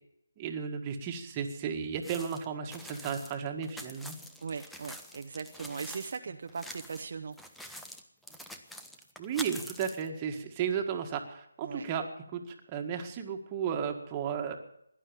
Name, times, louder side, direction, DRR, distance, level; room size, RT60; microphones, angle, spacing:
voice 1, 0.4-4.2 9.2-12.1 12.3-14.6, right 7 dB, 20° right, 4 dB, 1.8 m, -34 dB
sound 1, 2.0-6.2 6.5-7.0 7.3-10.1, equal, ahead, 0.9 m, -45 dB
voice 2, 4.4-7.4 11.6-11.9, right 5 dB, 50° right, 6 dB, 0.9 m, -39 dB
17.5 x 11.0 x 7.2 m, 0.75 s
figure-of-eight pair, 155°, 0 cm